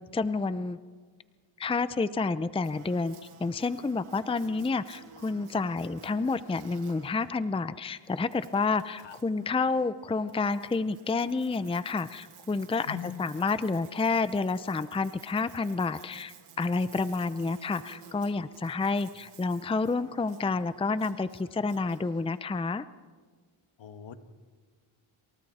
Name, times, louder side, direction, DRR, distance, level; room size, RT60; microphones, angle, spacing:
voice 1, 0.1-0.8 1.6-22.8, left 4 dB, 10° left, 14 dB, 0.6 m, -29 dB
Buzz, 2.6-22.4, right 6 dB, 80° right, 2.5 m, -54 dB
voice 2, 12.9-13.2 19.0-19.1 23.8-24.2, left 9 dB, 65° left, 9 dB, 1.5 m, -41 dB
28.0 x 27.0 x 4.3 m, 1.5 s
cardioid pair, 80°, 50 cm